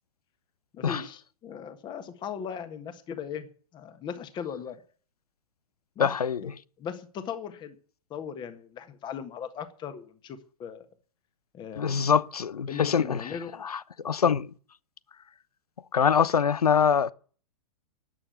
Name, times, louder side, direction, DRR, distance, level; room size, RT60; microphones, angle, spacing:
voice 1, 0.7-3.5 3.7-4.8 5.9-6.1 6.4-6.5 6.8-7.8 8.1-10.9 11.5-12.1 12.7-13.5, left 7 dB, 20° left, 1.6 m, -38 dB
voice 2, 6.0-6.4 11.8-13.2 13.6-13.8 14.0-14.5 15.9-17.1, left 7 dB, 70° left, 0.7 m, -24 dB
12.5 x 8.7 x 8.1 m
figure-of-eight pair, 105°, 20 cm